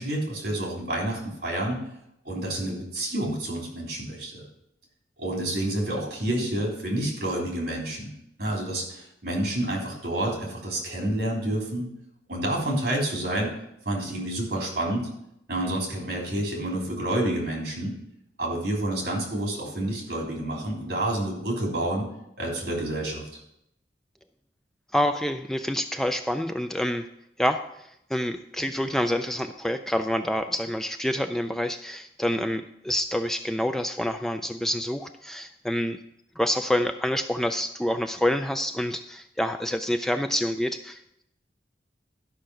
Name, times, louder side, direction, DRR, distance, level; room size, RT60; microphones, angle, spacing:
voice 1, 0.0-1.8 2.2-4.4 5.2-8.1 8.4-11.9 12.3-13.5 13.8-15.1 15.5-17.9 18.4-22.1 22.4-23.4, right 1 dB, 60° right, -1 dB, 3.5 m, -29 dB
voice 2, 24.9-27.1 27.4-36.0 36.4-41.2, equal, 5° left, 7 dB, 0.3 m, -27 dB
12.0 x 5.6 x 6.2 m, 0.78 s
head